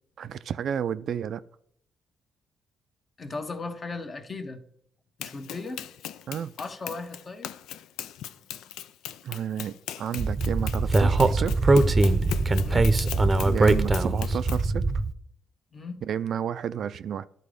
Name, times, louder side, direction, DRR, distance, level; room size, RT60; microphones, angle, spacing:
voice 1, 0.2-1.4 6.3-6.5 9.2-11.8 13.3-14.8 16.0-17.3, right 9 dB, 65° right, 0.4 m, -31 dB
voice 2, 3.2-4.6 5.2-5.9 6.6-7.5 12.6-12.9 15.7-16.0, left 3 dB, 40° left, 1.2 m, -36 dB
Run, 5.2-14.7, left 10 dB, 85° left, 0.4 m, -39 dB
Speech, 10.2-15.1, right 2 dB, 25° right, 0.7 m, -22 dB
11.5 x 4.1 x 5.1 m
cardioid pair, 90°, 0 cm